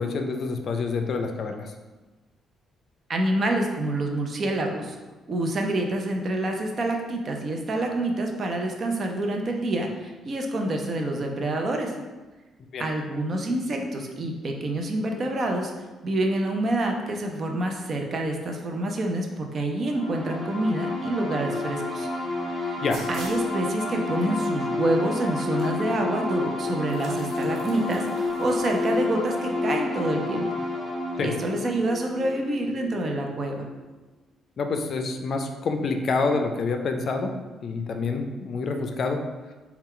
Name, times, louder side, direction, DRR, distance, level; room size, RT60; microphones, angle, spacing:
voice 1, 0.0-1.7 12.7-12.9 22.8-23.0 31.2-31.3 34.6-37.3 37.6-39.2, left 4 dB, 55° left, 5 dB, 0.4 m, -27 dB
voice 2, 3.1-5.0 5.3-11.9 12.8-15.7 16.0-22.1 22.5-22.8 23.1-30.5 31.2-33.7, right 1 dB, 45° right, 3 dB, 0.6 m, -27 dB
sound 1, 19.9-33.4, left 2 dB, 25° right, 1.4 m, -30 dB
sound 2, 22.9-23.5 24.4-24.5 25.6-25.7 26.0-26.1 26.8-29.0, right 2 dB, 65° right, 0.9 m, -44 dB
4.2 x 2.3 x 3.7 m, 1.2 s
cardioid pair, 90°, 0 cm